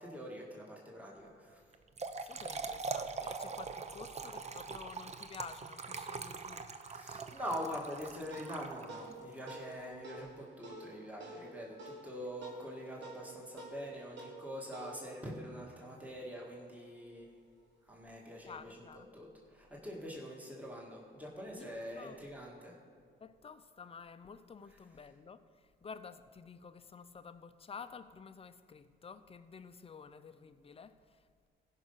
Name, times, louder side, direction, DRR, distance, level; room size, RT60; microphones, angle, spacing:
voice 1, 0.0-1.6 6.7-17.4 17.9-18.8 19.1-22.8, equal, 5° right, 2.0 m, -44 dB
Trickle dribble / Fill (with liquid), 1.7-9.2, right 4 dB, 35° right, 0.7 m, -42 dB
voice 2, 2.2-6.7 7.1-7.2 18.4-19.1 21.5-22.2 23.2-31.5, left 5 dB, 30° left, 0.6 m, -51 dB
sound 1, 7.9-16.7, right 2 dB, 65° right, 2.2 m, -51 dB
16.0 x 5.5 x 5.7 m
cardioid pair, 90°, 20 cm